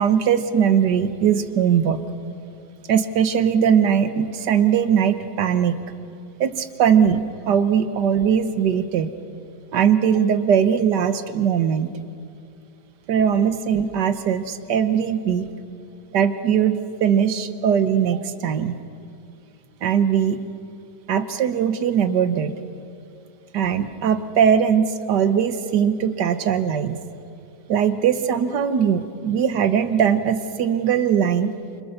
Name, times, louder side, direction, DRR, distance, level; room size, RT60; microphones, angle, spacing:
voice 1, 0.0-2.0 2.9-5.8 6.4-9.1 9.7-11.9 13.1-15.5 16.1-18.8 19.8-20.4 21.1-22.6 23.5-27.0 27.7-31.5, right 8 dB, 70° right, 11 dB, 1.6 m, -20 dB
27.0 x 25.0 x 6.7 m, 2.6 s
omnidirectional pair, 2.0 m